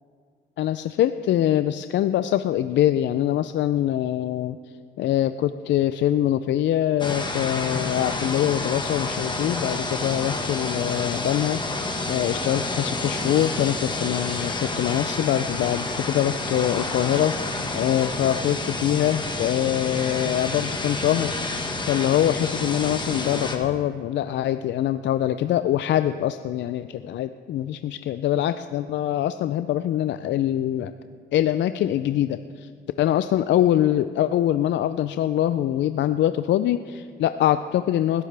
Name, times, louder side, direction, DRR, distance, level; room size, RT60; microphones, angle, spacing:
voice 1, 0.6-4.6 5.0-11.6 12.1-21.3 21.9-30.9 31.3-32.7 33.0-38.2, left 12 dB, 65° left, 11 dB, 0.4 m, -24 dB
sound 1, 7.0-23.6, left 2 dB, 25° left, 1.5 m, -29 dB
20.5 x 11.5 x 3.4 m, 2.2 s
cardioid pair, 90°, 20 cm